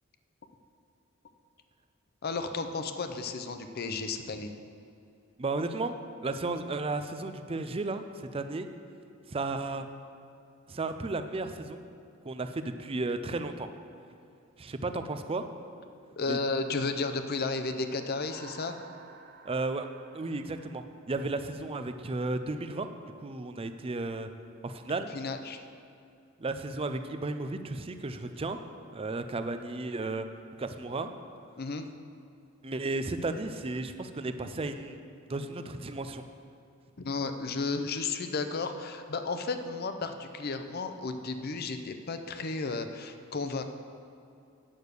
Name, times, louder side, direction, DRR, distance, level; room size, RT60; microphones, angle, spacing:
voice 1, 2.2-4.5 16.2-18.8 25.1-25.6 31.6-31.9 37.0-43.6, left 3 dB, 50° left, 8 dB, 0.6 m, -33 dB
voice 2, 5.4-6.0 6.2-8.7 9.3-9.9 10.7-11.8 12.2-13.7 14.6-15.5 16.3-16.4 19.5-19.9 20.1-22.9 23.2-24.3 24.6-25.2 26.4-28.6 28.9-30.3 30.6-31.1 32.6-35.0 35.3-36.2, right 3 dB, 30° right, 8 dB, 0.5 m, -34 dB
sound 1, 17.4-21.9, right 6 dB, 50° right, 0.8 m, -54 dB
8.7 x 6.4 x 6.7 m, 2.6 s
head